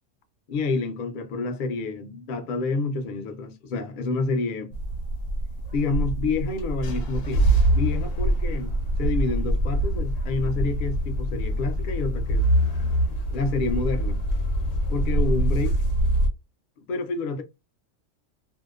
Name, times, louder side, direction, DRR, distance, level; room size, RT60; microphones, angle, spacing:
voice 1, 0.5-4.7 5.7-8.7 9.0-12.5 13.3-14.2 14.9-15.8 16.9-17.4, left 3 dB, 55° left, 0.6 m, -28 dB
sound 1, 4.7-16.3, right 1 dB, 85° left, 1.0 m, -24 dB
2.7 x 2.0 x 2.3 m
omnidirectional pair, 1.3 m